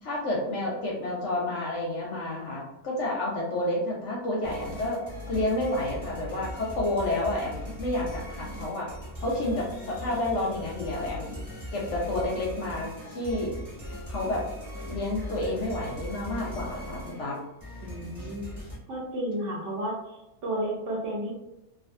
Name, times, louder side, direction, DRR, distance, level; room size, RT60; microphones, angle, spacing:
voice 1, 0.0-5.0 5.3-8.9 9.2-11.4 11.7-13.5 14.1-14.4 14.9-17.4 18.2-18.3, left 1 dB, 65° left, -3 dB, 0.8 m, -30 dB
sound 1, 4.4-18.8, left 1 dB, 15° right, 1.0 m, -39 dB
voice 2, 17.8-18.5 18.9-21.3, right 1 dB, 65° right, -3 dB, 0.8 m, -32 dB
2.5 x 2.3 x 2.5 m, 0.94 s
omnidirectional pair, 1.6 m